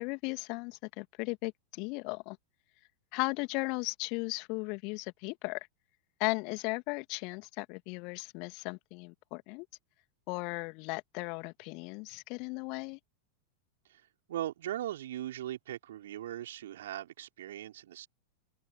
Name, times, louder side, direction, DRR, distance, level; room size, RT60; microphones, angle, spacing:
voice 1, 0.0-2.4 3.1-5.7 6.2-9.7 10.3-13.0, left 30 dB, 45° left, 2.6 m, -36 dB
voice 2, 14.3-18.1, right 12 dB, 60° right, 4.8 m, -39 dB
figure-of-eight pair, 90°, 0 cm